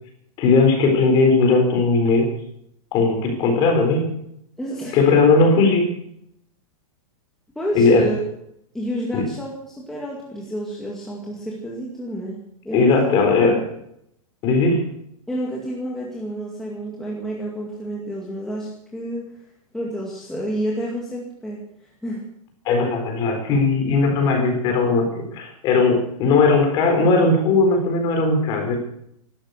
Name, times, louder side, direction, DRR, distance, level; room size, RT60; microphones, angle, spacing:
voice 1, 0.4-2.3 2.9-4.0 4.9-5.9 7.7-8.1 9.1-9.2 12.7-13.6 14.4-14.8 22.6-25.1 25.3-28.8, left 3 dB, 25° left, 4 dB, 4.0 m, -18 dB
voice 2, 4.6-5.1 7.6-8.2 8.7-13.2 13.5-13.6 15.3-19.4 19.7-21.6 22.0-22.2, equal, ahead, -4 dB, 2.1 m, -29 dB
17.0 x 12.5 x 6.4 m, 0.74 s
supercardioid pair, 170°, 18 cm